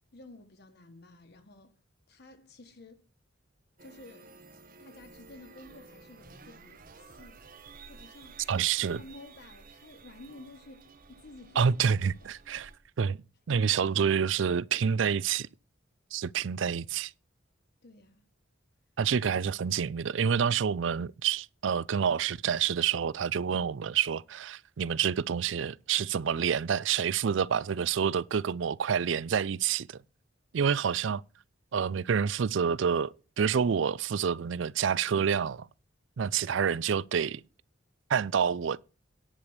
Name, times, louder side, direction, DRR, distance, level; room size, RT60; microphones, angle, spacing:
voice 1, 0.1-1.7 2.1-3.1 3.8-4.3 4.8-7.5 7.8-8.4 8.8-11.8 12.2-12.3 17.8-18.2, left 2 dB, 55° left, 1.2 m, -52 dB
sound 1, 3.8-12.8, right 4 dB, 45° right, 1.1 m, -53 dB
voice 2, 8.5-9.0 11.6-12.7 13.0-13.2 13.5-15.5 16.1-17.1 19.0-30.0 30.5-31.2 31.7-35.7 36.2-37.4 38.1-38.8, right 7 dB, 70° right, 0.4 m, -28 dB
9.9 x 5.0 x 7.8 m
head